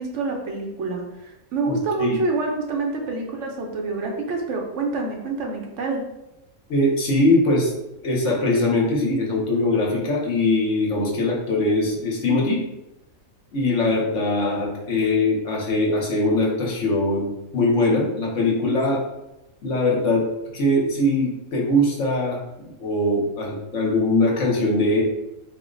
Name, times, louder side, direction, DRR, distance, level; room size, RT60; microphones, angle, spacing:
voice 1, 0.0-6.0, right 3 dB, 60° right, 1 dB, 0.8 m, -27 dB
voice 2, 1.7-2.2 6.7-7.7 8.0-12.6 13.5-19.0 19.6-20.3 20.5-25.0, left 2 dB, 55° left, -2 dB, 1.1 m, -21 dB
4.3 x 2.1 x 3.8 m, 0.91 s
omnidirectional pair, 1.6 m